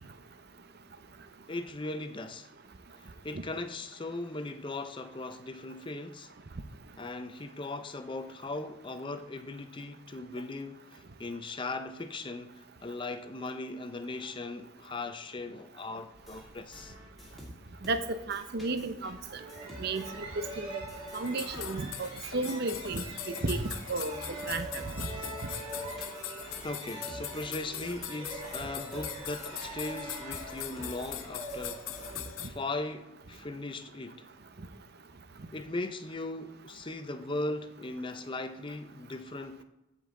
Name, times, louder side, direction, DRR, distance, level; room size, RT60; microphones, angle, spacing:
voice 1, 1.5-2.5 3.0-6.4 7.0-16.9 26.6-31.9 32.4-34.3 35.5-39.6, left 2 dB, 25° left, 0.6 m, -38 dB
sound 1, 16.1-21.3 21.5-32.7, equal, ahead, 2.5 m, -50 dB
voice 2, 17.8-19.2 19.8-20.0 20.6-20.8 21.1-24.1 24.5-25.1, right 3 dB, 50° right, 0.7 m, -33 dB
sound 2, 19.4-32.9, right 2 dB, 25° right, 2.3 m, -44 dB
sound 3, 21.1-32.5, left 12 dB, 85° left, 0.6 m, -42 dB
15.0 x 5.4 x 3.8 m
head